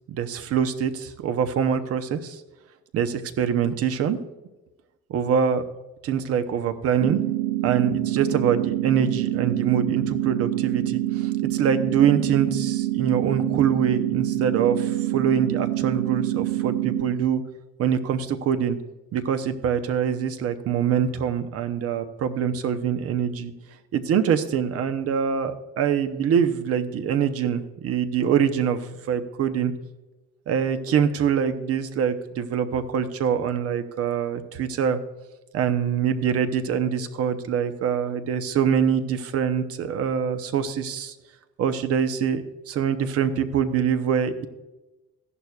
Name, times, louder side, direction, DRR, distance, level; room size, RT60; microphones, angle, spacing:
voice 1, 0.1-2.4 2.9-4.2 5.1-5.6 6.0-7.2 7.6-17.4 17.8-18.8 19.1-23.5 23.9-29.7 30.5-35.0 35.5-41.1 41.6-44.3, right 8 dB, 55° right, 9 dB, 0.8 m, -24 dB
sound 1, 7.0-17.0, right 15 dB, 75° right, 4.1 m, -26 dB
15.0 x 11.0 x 2.4 m, 1.1 s
cardioid pair, 155°, 29 cm